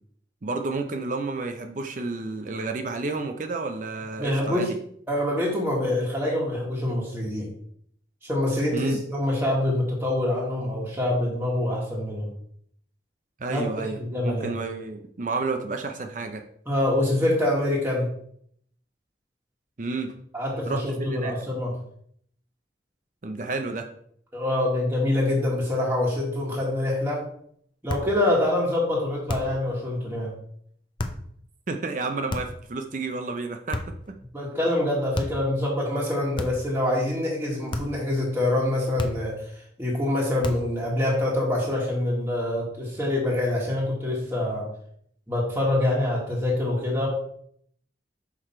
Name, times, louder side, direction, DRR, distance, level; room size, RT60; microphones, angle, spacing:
voice 1, 0.4-4.8 8.7-9.0 13.4-16.4 19.8-20.2 20.7-21.4 23.2-23.9 31.7-33.8 34.1-34.2, right 3 dB, 45° right, 5 dB, 0.5 m, -31 dB
voice 2, 4.2-4.7 5.1-7.5 8.2-12.3 13.5-13.6 14.0-14.5 16.7-18.1 20.3-21.7 24.3-27.2 27.8-30.3 34.3-39.4 39.8-44.7 45.3-47.1, left 1 dB, 15° right, -5 dB, 1.4 m, -25 dB
sound 1, 27.9-28.2 29.3-29.6 31.0-31.3 32.3-32.7 33.7-34.1 35.1-35.5 36.3-36.8 37.7-38.0 39.0-39.4 40.4-40.8, left 2 dB, 25° left, 0.6 m, -32 dB
5.9 x 4.8 x 4.3 m, 0.66 s
head